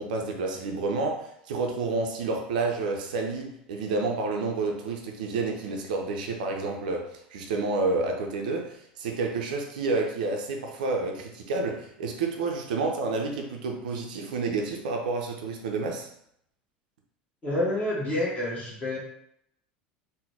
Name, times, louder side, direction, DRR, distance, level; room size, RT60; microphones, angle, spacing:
voice 1, 0.0-16.1, right 3 dB, 65° right, 2 dB, 0.5 m, -29 dB
voice 2, 17.4-19.0, left 1 dB, 25° left, -5 dB, 1.4 m, -28 dB
3.8 x 2.2 x 3.3 m, 0.72 s
figure-of-eight pair, 75°, 5 cm